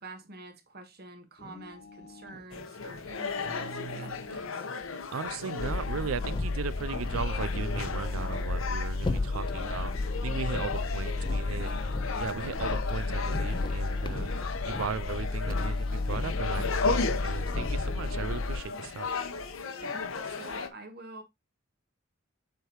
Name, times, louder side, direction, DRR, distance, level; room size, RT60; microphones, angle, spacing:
voice 1, 0.0-4.7 19.7-21.2, right 2 dB, 50° right, 1.5 m, -47 dB
sound 1, 1.4-2.5 3.4-4.5 5.4-6.5 7.4-8.5 9.4-10.5 11.4-12.5 13.4-14.6 15.4-16.6 17.4-18.5, left 2 dB, 55° left, 1.3 m, -49 dB
sound 2, 2.5-20.7, left 4 dB, 80° left, 1.0 m, -35 dB
voice 2, 3.5-4.3 5.1-11.7 12.2-14.3 14.6-19.1, right 6 dB, 90° right, 0.5 m, -37 dB
sound 3, 5.6-18.6, left 3 dB, 25° left, 0.3 m, -32 dB
7.9 x 4.7 x 3.0 m
head